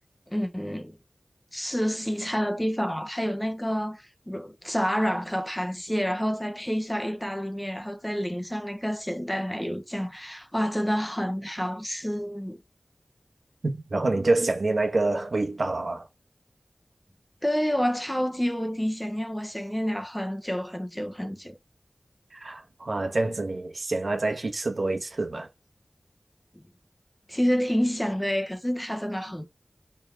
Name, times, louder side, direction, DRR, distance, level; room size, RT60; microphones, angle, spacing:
voice 1, 0.3-1.0 1.5-12.6 17.4-21.6 26.5-26.6 27.3-29.5, equal, 10° left, 1.2 m, -28 dB
voice 2, 13.6-16.1 22.3-25.5, right 2 dB, 70° right, 1.5 m, -27 dB
6.3 x 4.9 x 3.6 m
wide cardioid pair, 55°, 0 cm